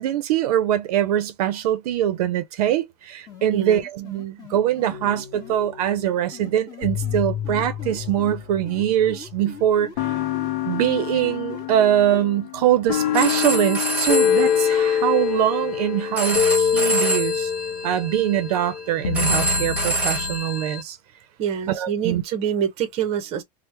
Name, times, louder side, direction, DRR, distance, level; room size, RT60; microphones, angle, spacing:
voice 1, 0.0-9.9 10.6-17.5 17.8-21.0 21.7-22.2, right 11 dB, 65° right, 0.6 m, -23 dB
sound 1, 3.3-5.5 6.3-8.4 8.7-12.2, left 5 dB, 20° left, 1.1 m, -41 dB
voice 2, 3.5-3.8 21.4-23.4, right 8 dB, 30° right, 0.7 m, -26 dB
sound 2, 4.9-6.1 6.8-9.4 10.0-20.4, left 8 dB, 60° left, 0.6 m, -26 dB
Telephone, 13.0-20.8, right 2 dB, 5° right, 1.2 m, -27 dB
3.0 x 2.1 x 3.2 m
supercardioid pair, 155°, 21 cm